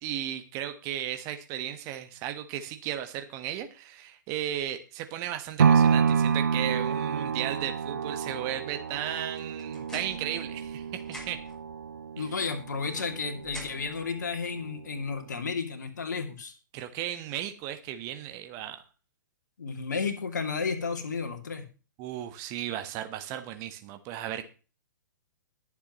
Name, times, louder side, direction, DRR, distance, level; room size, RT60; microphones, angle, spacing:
voice 1, 0.0-11.4 16.7-18.8 22.0-24.4, right 11 dB, 30° right, 8 dB, 1.3 m, -35 dB
sound 1, 5.6-13.7 14.2-14.3, right 6 dB, 60° right, 0.6 m, -28 dB
sound 2, 9.4-10.7 11.0-11.6 12.4-14.0, left 1 dB, 5° left, 7.1 m, -46 dB
voice 2, 12.2-16.5 19.6-21.6, left 5 dB, 60° left, 5 dB, 2.5 m, -32 dB
21.5 x 7.4 x 3.1 m, 0.34 s
figure-of-eight pair, 115°, 11 cm